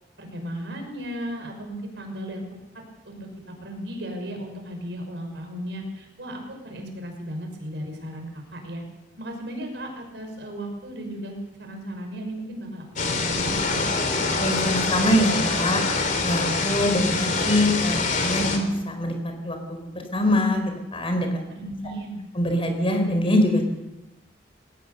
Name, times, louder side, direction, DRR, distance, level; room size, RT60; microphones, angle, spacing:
voice 1, 0.2-2.4 3.0-8.8 9.2-13.8 21.5-22.2, equal, 75° right, 3 dB, 5.8 m, -35 dB
sound 1, 13.0-18.6, left 3 dB, 50° left, 3.2 m, -25 dB
voice 2, 14.2-15.8 16.2-21.4 22.4-23.6, left 1 dB, 30° left, 5 dB, 4.3 m, -24 dB
20.5 x 18.5 x 6.9 m, 1.0 s
head